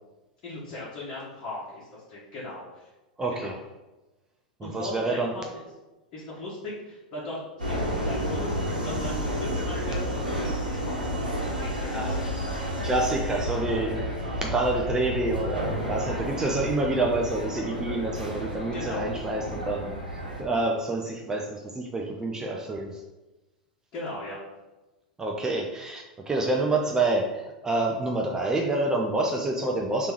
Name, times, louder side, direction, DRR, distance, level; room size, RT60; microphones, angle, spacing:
voice 1, 0.4-2.8 3.3-3.6 4.6-5.6 6.1-7.4 7.7-11.0 11.6-12.1 18.7-19.0 23.9-24.4, left 2 dB, 40° left, -9 dB, 1.3 m, -38 dB
voice 2, 3.2-3.6 4.6-5.3 11.9-12.2 12.8-14.2 14.4-23.0 25.2-30.1, right 2 dB, 15° right, 1 dB, 0.5 m, -28 dB
Subway metro underground, 7.6-20.4, equal, 85° right, 1.0 m, -31 dB
3.4 x 2.9 x 4.6 m, 1.1 s
figure-of-eight pair, 90°, 4 cm